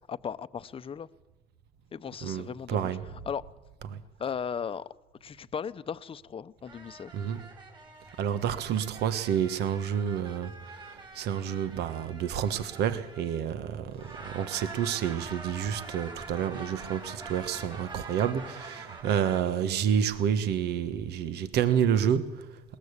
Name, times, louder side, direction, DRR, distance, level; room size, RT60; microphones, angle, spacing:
voice 1, 0.1-1.1 1.9-3.0 3.3-3.4 4.2-4.9 5.2-7.1, left 7 dB, 35° left, 0.8 m, -36 dB
voice 2, 2.2-3.0 3.9-4.0 7.1-7.5 8.2-22.5, right 8 dB, 75° right, 1.4 m, -29 dB
sound 1, 6.6-13.6 14.0-19.4, right 3 dB, 25° right, 5.7 m, -45 dB
20.5 x 19.5 x 8.3 m
cardioid pair, 110°, 17 cm